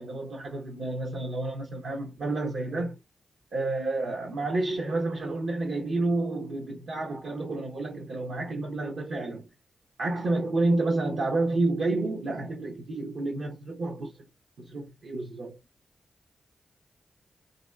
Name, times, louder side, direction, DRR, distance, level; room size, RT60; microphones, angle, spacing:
voice 1, 0.0-3.0 3.5-9.5 10.0-14.2 14.6-15.6, right 2 dB, 75° right, 0.7 m, -30 dB
2.9 x 2.8 x 2.2 m
supercardioid pair, 40°, 0 cm